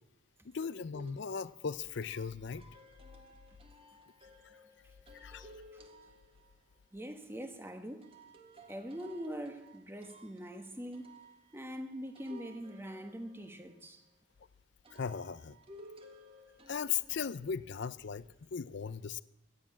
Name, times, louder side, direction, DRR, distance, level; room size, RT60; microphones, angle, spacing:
voice 1, 0.4-2.6 5.1-5.5 14.9-15.6 16.7-19.2, left 7 dB, 55° left, 0.5 m, -37 dB
sound 1, 0.9-6.8 8.0-14.1 14.8-17.8, equal, 25° right, 1.5 m, -57 dB
voice 2, 5.4-5.8 6.9-8.1 8.7-11.1 11.5-14.0, equal, 10° right, 1.1 m, -43 dB
15.0 x 9.6 x 8.7 m
head